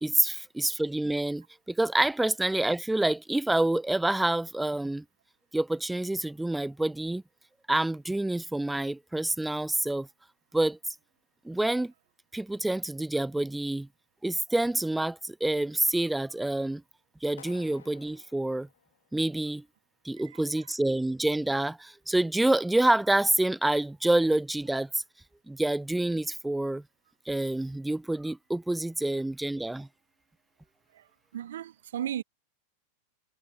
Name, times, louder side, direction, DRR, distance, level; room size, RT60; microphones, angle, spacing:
voice 1, 0.0-5.0 5.5-7.2 7.7-10.1 10.5-10.8 11.4-11.9 12.3-13.9 14.2-16.8 17.2-18.7 19.1-19.6 20.0-25.0 25.5-26.8 27.3-29.9, right 1 dB, 5° right, 0.5 m, -27 dB
Clapping, 17.4-19.4, left 10 dB, 80° left, 2.2 m, -54 dB
voice 2, 30.9-32.2, right 10 dB, 75° right, 0.5 m, -36 dB
hypercardioid pair, 95°, 0 cm